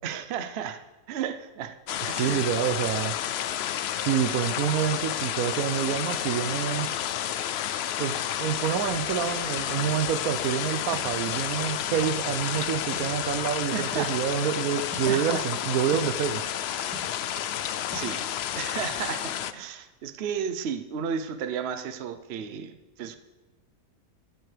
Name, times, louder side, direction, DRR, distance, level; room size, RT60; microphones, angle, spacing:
voice 1, 0.0-0.8 1.1-1.7 2.1-2.5 13.7-14.1 15.1-15.4 17.9-18.3 18.5-23.2, right 7 dB, 55° right, 9 dB, 0.8 m, -33 dB
sound 1, 1.9-19.5, left 10 dB, 85° left, 0.5 m, -31 dB
voice 2, 2.1-3.1 3.9-6.9 8.0-16.4, right 9 dB, 75° right, 11 dB, 1.0 m, -27 dB
sound 2, 10.9-11.1 11.9-12.1 12.9-13.1 13.9-14.1 14.9-15.1 15.9-16.1 16.9-17.1 17.9-18.1, equal, 5° right, 2.7 m, -39 dB
13.5 x 12.5 x 3.4 m, 1.2 s
omnidirectional pair, 1.6 m